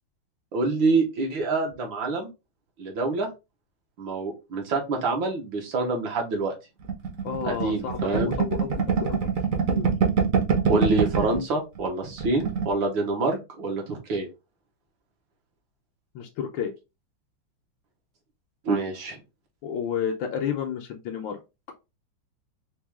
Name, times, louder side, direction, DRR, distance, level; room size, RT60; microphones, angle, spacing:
voice 1, 0.5-2.3 2.8-3.3 4.0-6.5 7.5-8.4 10.7-14.3 18.7-19.2, right 3 dB, 70° right, 1 dB, 1.8 m, -26 dB
sound 1, 6.9-11.4 11.7-11.9 12.1-12.7, right 6 dB, 50° right, 1.1 m, -24 dB
voice 2, 7.2-9.3 9.7-9.9 16.1-16.7 19.6-21.4, left 8 dB, 75° left, 3 dB, 1.3 m, -31 dB
4.7 x 2.3 x 3.5 m, 0.26 s
omnidirectional pair, 2.2 m